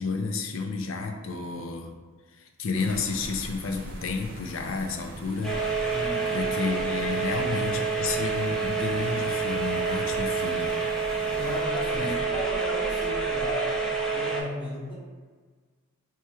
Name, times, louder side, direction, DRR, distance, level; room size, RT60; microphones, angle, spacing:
voice 1, 0.0-1.9 2.4-5.5 6.3-10.8 11.1-11.5 11.9-12.2, left 4 dB, 60° left, 4 dB, 0.4 m, -31 dB
sound 1, 2.7-11.6, right 1 dB, 45° right, 0.5 m, -42 dB
sound 2, 5.4-14.4, right 4 dB, 5° left, 0.4 m, -28 dB
voice 2, 5.9-6.4 11.3-13.8 14.1-14.9, left 1 dB, 25° left, -8 dB, 1.0 m, -34 dB
3.1 x 2.3 x 4.3 m, 1.5 s
head